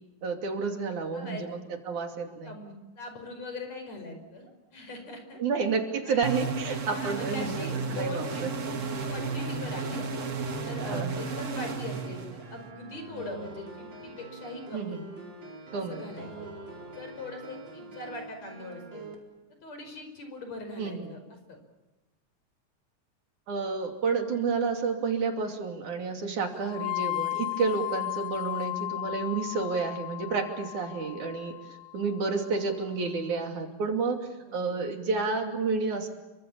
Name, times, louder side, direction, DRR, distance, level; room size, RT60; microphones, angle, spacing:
voice 1, 0.2-1.6 1.9-2.6 5.4-7.6 7.9-8.5 10.9-11.2 14.7-15.0 15.7-16.1 20.8-21.1 23.5-31.5 31.9-36.1, right 4 dB, 65° right, 3 dB, 4.2 m, -30 dB
voice 2, 1.1-1.5 2.4-5.4 6.0-6.2 6.9-8.4 9.1-10.1 10.6-15.0 15.7-16.5 16.9-19.1 19.6-21.6 26.5-26.7 34.4-34.8, left 2 dB, 55° left, 6 dB, 6.4 m, -41 dB
sound 1, 6.2-12.7, right 4 dB, 90° right, 0.6 m, -33 dB
sound 2, 7.2-19.1, right 2 dB, 35° right, 4.8 m, -44 dB
sound 3, 26.6-32.6, left 20 dB, 85° left, 3.3 m, -35 dB
29.5 x 24.5 x 7.3 m, 1.1 s
omnidirectional pair, 3.7 m